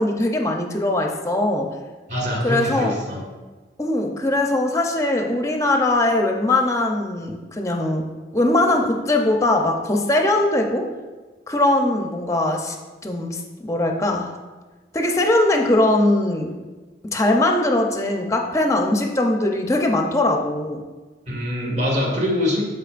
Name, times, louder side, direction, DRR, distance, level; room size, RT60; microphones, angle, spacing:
voice 1, 0.0-1.7 2.4-2.9 3.8-8.1 8.3-10.9 11.5-12.8 13.0-14.3 14.9-16.5 17.1-20.8, left 1 dB, 15° left, 3 dB, 0.6 m, -20 dB
voice 2, 2.1-3.2 21.3-22.6, left 1 dB, 40° right, -2 dB, 1.7 m, -23 dB
12.0 x 4.8 x 2.5 m, 1.3 s
head